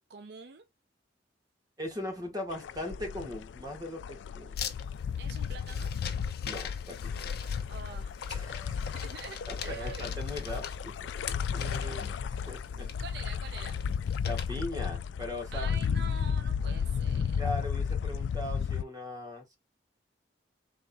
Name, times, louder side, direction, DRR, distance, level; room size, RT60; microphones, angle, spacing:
voice 1, 0.1-0.7 5.2-5.9 7.7-8.2 8.9-10.1 12.8-13.8 15.5-17.6, right 5 dB, 65° right, 0.6 m, -45 dB
voice 2, 1.8-4.7 6.4-7.3 8.3-8.9 9.5-11.1 11.5-12.9 14.3-15.8 17.4-19.6, left 1 dB, 20° right, 1.8 m, -39 dB
sound 1, 2.5-18.8, left 7 dB, 85° left, 0.3 m, -33 dB
sound 2, 4.6-14.5, left 8 dB, 60° left, 0.8 m, -43 dB
4.2 x 3.6 x 2.3 m
head